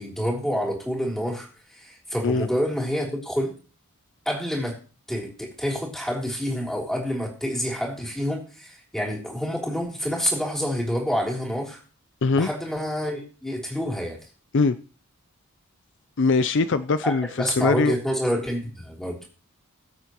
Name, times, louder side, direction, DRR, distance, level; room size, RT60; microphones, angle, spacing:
voice 1, 0.0-3.5 4.2-4.8 5.1-11.8 12.3-14.2 17.0-19.2, equal, ahead, 3.4 m, -28 dB
voice 2, 16.2-18.0, left 3 dB, 55° left, 0.5 m, -22 dB
21.5 x 8.1 x 3.1 m
head